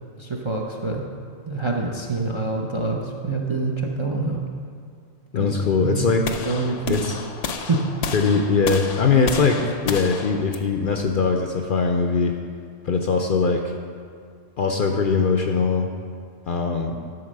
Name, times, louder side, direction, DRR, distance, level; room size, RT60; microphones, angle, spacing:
voice 1, 0.2-1.0 1.4-4.4 5.4-7.0 7.6-7.8, right 3 dB, 35° right, 0 dB, 0.5 m, -26 dB
voice 2, 5.3-6.4 6.9-7.1 8.1-12.3 12.8-13.7 14.6-15.9 16.5-17.0, left 4 dB, 55° left, 3 dB, 0.6 m, -21 dB
sound 1, 6.2-12.3, left 5 dB, 75° left, 1.0 m, -32 dB
11.0 x 4.1 x 6.5 m, 2.1 s
omnidirectional pair, 1.3 m